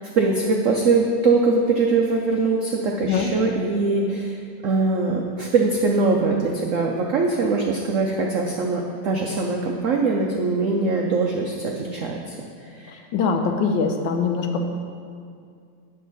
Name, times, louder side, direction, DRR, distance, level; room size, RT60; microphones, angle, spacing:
voice 1, 0.2-4.4 4.6-12.4 12.7-13.0, right 3 dB, 85° right, 0 dB, 0.7 m, -22 dB
voice 2, 12.9-14.7, left 5 dB, 80° left, 5 dB, 1.4 m, -23 dB
8.6 x 6.7 x 4.0 m, 2.3 s
omnidirectional pair, 2.1 m